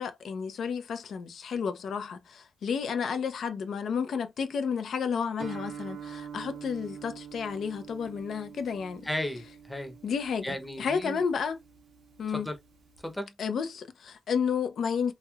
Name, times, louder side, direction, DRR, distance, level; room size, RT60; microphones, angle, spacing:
voice 1, 0.0-9.1 10.0-11.6 12.2-12.5 13.4-15.1, left 6 dB, 80° left, 0.5 m, -31 dB
Guitar, 5.4-13.1, right 7 dB, 85° right, 1.1 m, -45 dB
voice 2, 9.0-9.9 10.4-11.2 12.3-12.6 13.0-13.3, left 1 dB, 10° left, 0.7 m, -35 dB
3.0 x 2.7 x 2.3 m
wide cardioid pair, 105°, 0 cm